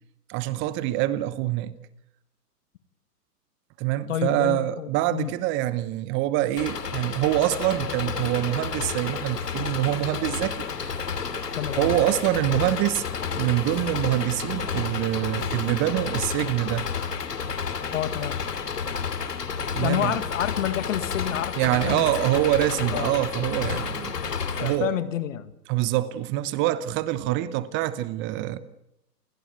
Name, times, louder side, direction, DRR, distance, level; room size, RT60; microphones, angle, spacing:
voice 1, 0.3-1.7 3.8-11.1 11.8-13.0 13.3-16.8 19.7-20.2 21.6-24.1 24.6-24.9 25.7-28.6, right 15 dB, 25° right, 1.0 m, -25 dB
voice 2, 4.1-5.3 11.6-11.9 17.9-18.4 19.8-22.1 22.9-23.2 23.5-23.8 24.6-25.5, left 11 dB, 50° left, 2.0 m, -29 dB
Engine, 6.6-24.8, left 6 dB, 75° left, 2.9 m, -31 dB
Aircraft / Engine, 10.7-15.7, left 2 dB, 10° left, 4.2 m, -47 dB
28.5 x 18.5 x 8.1 m
figure-of-eight pair, 120°, 48 cm